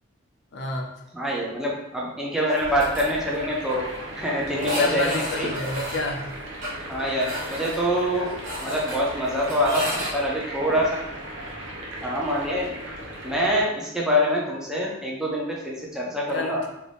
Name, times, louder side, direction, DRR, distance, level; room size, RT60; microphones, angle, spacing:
voice 1, 0.5-0.9 4.7-6.3 16.3-16.7, left 2 dB, 60° left, 1 dB, 0.5 m, -29 dB
voice 2, 1.1-3.8 4.2-5.5 6.9-8.3 8.6-11.0 12.0-12.7 13.2-16.6, equal, 5° right, -4 dB, 0.5 m, -25 dB
sound 1, 2.5-3.0 3.3-3.4 3.7-3.8 4.5-10.1, equal, 40° right, 1.1 m, -33 dB
sound 2, 2.6-13.7, right 1 dB, 70° right, 0.7 m, -37 dB
2.7 x 2.6 x 3.4 m, 0.88 s
head